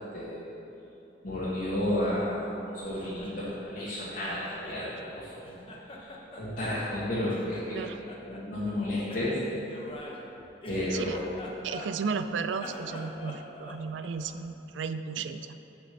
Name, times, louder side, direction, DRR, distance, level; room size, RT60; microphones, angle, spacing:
voice 1, 1.2-4.9 5.1-5.6 5.9-7.8 8.2-9.4 10.7-11.3, left 1 dB, 50° left, -10 dB, 1.5 m, -32 dB
Laughter, 2.8-5.1 5.4-7.0 7.2-8.4 9.1-12.2 12.5-14.4, left 1 dB, 30° left, 0.8 m, -45 dB
voice 2, 11.6-15.6, right 5 dB, 70° right, 11 dB, 0.4 m, -34 dB
6.7 x 5.1 x 6.5 m, 3.0 s
head